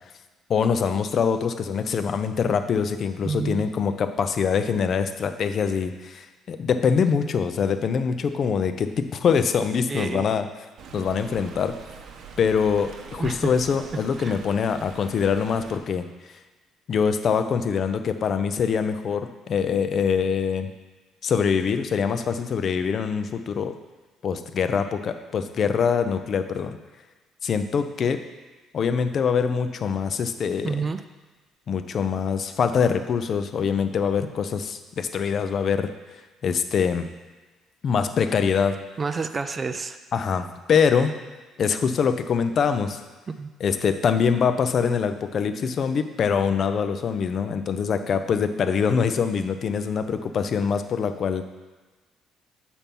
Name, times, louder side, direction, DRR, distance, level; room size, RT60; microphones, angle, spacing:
voice 1, 0.5-10.5 10.9-11.8 12.4-16.3 16.9-20.7 21.2-23.7 24.2-26.8 27.4-28.2 28.7-30.8 31.7-35.9 36.4-37.1 37.8-38.8 40.1-41.1 41.6-43.0 43.6-51.4, left 6 dB, 45° left, 9 dB, 0.5 m, -24 dB
voice 2, 3.2-3.7 9.9-10.3 13.2-13.6 14.2-14.4 30.6-31.0 39.0-40.0 43.3-43.5, right 4 dB, 25° right, 9 dB, 0.3 m, -29 dB
Stream, 10.8-15.8, right 6 dB, 55° right, 0.7 m, -43 dB
7.1 x 4.3 x 5.3 m, 1.3 s
cardioid pair, 130°, 0 cm